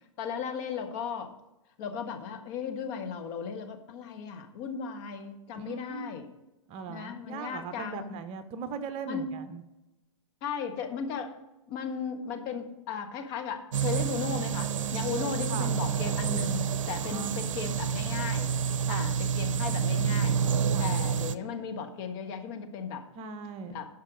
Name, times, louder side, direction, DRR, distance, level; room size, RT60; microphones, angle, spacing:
voice 1, 0.2-1.3 1.8-6.3 6.9-8.1 9.1-9.3 10.4-11.3 11.7-18.5 18.9-23.0 23.7-23.9, left 6 dB, 45° left, 4 dB, 1.4 m, -36 dB
voice 2, 5.5-6.2 6.7-9.6 15.1-15.7 17.1-17.4 18.9-19.1 20.7-20.9 23.2-23.8, right 6 dB, 35° right, 10 dB, 0.8 m, -39 dB
sound 1, 13.7-21.3, right 7 dB, 70° right, 0.6 m, -29 dB
11.0 x 5.5 x 5.0 m, 0.97 s
hypercardioid pair, 120°, 17 cm